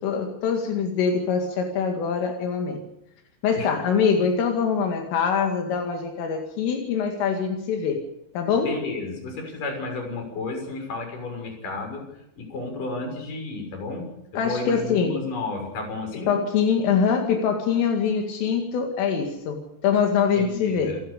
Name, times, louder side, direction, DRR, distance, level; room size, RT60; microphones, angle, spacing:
voice 1, 0.0-2.8 3.4-8.0 8.3-8.7 14.4-15.2 16.3-21.0, left 6 dB, 80° left, 3 dB, 4.8 m, -24 dB
voice 2, 8.6-14.1 14.3-16.3 20.4-21.0, left 3 dB, 40° left, 3 dB, 7.8 m, -32 dB
28.0 x 15.0 x 6.8 m, 0.82 s
omnidirectional pair, 5.7 m